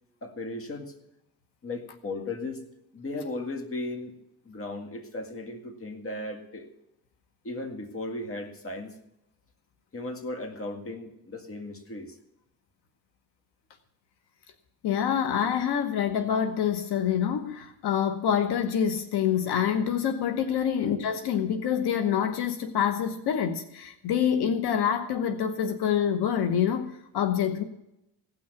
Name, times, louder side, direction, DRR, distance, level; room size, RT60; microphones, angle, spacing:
voice 1, 0.2-0.9 1.6-2.6 2.9-4.1 4.5-6.7 7.4-9.0 9.9-12.2 20.7-20.8, left 2 dB, 35° left, 5 dB, 2.0 m, -36 dB
voice 2, 14.8-27.6, left 8 dB, 90° left, 8 dB, 1.1 m, -26 dB
17.0 x 6.2 x 8.1 m, 0.83 s
cardioid pair, 100°, 38 cm